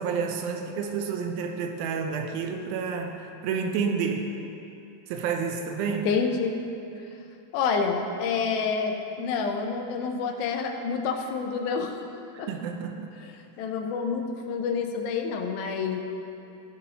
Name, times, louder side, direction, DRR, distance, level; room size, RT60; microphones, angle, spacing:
voice 1, 0.0-4.3 5.1-6.1 12.3-13.1, right 6 dB, 85° right, 4 dB, 2.5 m, -30 dB
voice 2, 6.0-6.5 7.5-12.0 12.4-12.5 13.6-16.0, left 5 dB, 85° left, 3 dB, 2.6 m, -28 dB
15.0 x 10.0 x 2.9 m, 2.7 s
omnidirectional pair, 4.2 m